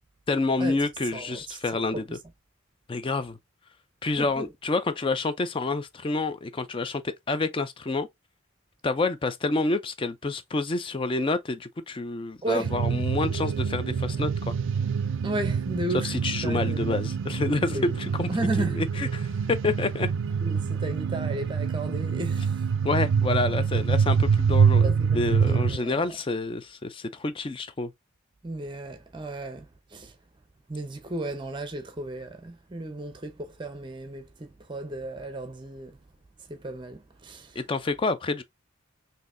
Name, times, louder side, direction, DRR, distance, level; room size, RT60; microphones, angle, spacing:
voice 1, 0.3-2.1 2.9-3.4 4.0-8.1 8.8-14.3 16.0-18.3 18.8-19.3 19.6-20.1 22.8-27.9 37.6-38.4, left 3 dB, 25° left, 0.4 m, -28 dB
voice 2, 1.1-2.0 4.2-4.5 12.4-12.7 15.2-16.2 16.4-16.9 17.7-18.0 18.3-18.8 20.4-22.7 24.8-26.2 28.4-30.1 30.7-36.0 36.5-37.6, right 2 dB, 25° right, 0.6 m, -34 dB
sound 1, 12.6-25.8, right 6 dB, 70° right, 0.4 m, -26 dB
3.9 x 2.7 x 2.5 m
head